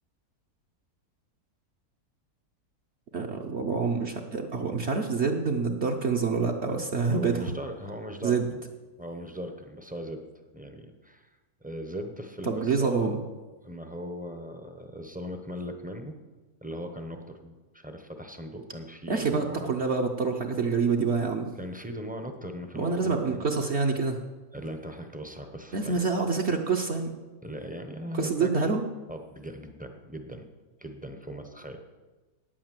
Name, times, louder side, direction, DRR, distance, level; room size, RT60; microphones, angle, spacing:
voice 1, 3.1-7.4 8.2-8.5 12.5-13.2 19.1-21.5 22.8-24.2 25.7-27.1 28.1-28.8, right 4 dB, 50° right, 2 dB, 1.0 m, -27 dB
voice 2, 7.1-8.6 9.0-10.3 10.5-11.4 11.6-13.2 13.6-16.2 16.6-19.7 21.6-23.5 24.5-26.0 27.4-28.7 29.1-30.5 30.8-31.8, equal, 10° right, 5 dB, 0.6 m, -39 dB
9.4 x 8.7 x 7.6 m, 1.2 s
omnidirectional pair, 1.7 m